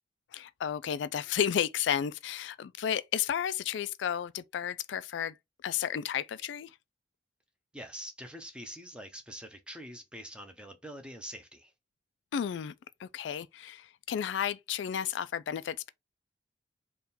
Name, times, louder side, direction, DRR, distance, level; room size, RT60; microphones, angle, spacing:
voice 1, 0.3-5.4 5.6-6.7 12.3-12.7 13.0-15.9, left 9 dB, 85° left, 0.3 m, -32 dB
voice 2, 7.7-11.7, equal, 5° right, 0.7 m, -45 dB
3.6 x 2.4 x 4.1 m
head